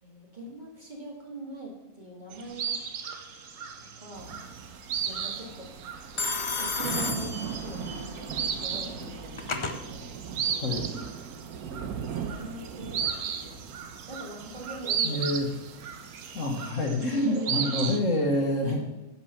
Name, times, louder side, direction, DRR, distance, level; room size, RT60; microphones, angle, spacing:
voice 1, 0.0-2.8 3.8-4.4 5.1-5.7 6.6-10.0 10.5-10.6 11.9-13.6 14.1-15.3 17.1-17.7 18.7-18.9, right 1 dB, 30° right, -2 dB, 2.2 m, -42 dB
sound 1, 2.3-18.0, right 7 dB, 65° right, 1.1 m, -35 dB
Telephone, 2.6-3.1 6.2-8.0 9.0-9.8, left 3 dB, 40° left, 0.4 m, -33 dB
sound 2, 4.1-16.7, right 6 dB, 85° right, 1.4 m, -40 dB
voice 2, 15.0-15.5 16.3-18.9, left 1 dB, 60° left, 2 dB, 1.7 m, -27 dB
10.0 x 6.1 x 5.8 m, 1.0 s
omnidirectional pair, 1.5 m